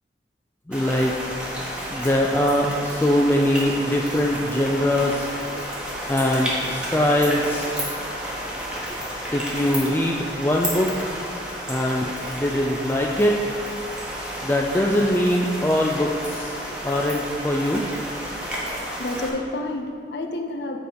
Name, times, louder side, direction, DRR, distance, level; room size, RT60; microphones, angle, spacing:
voice 1, 0.7-1.6 1.9-5.3 6.1-7.7 8.9-9.0 9.3-11.1 11.7-13.6 14.4-16.5 16.8-17.8, left 1 dB, 10° left, -1 dB, 0.3 m, -22 dB
sound 1, 0.7-19.3, equal, 5° right, 1.1 m, -31 dB
voice 2, 18.5-20.8, left 2 dB, 70° left, 4 dB, 0.6 m, -30 dB
7.7 x 4.6 x 5.0 m, 2.3 s
head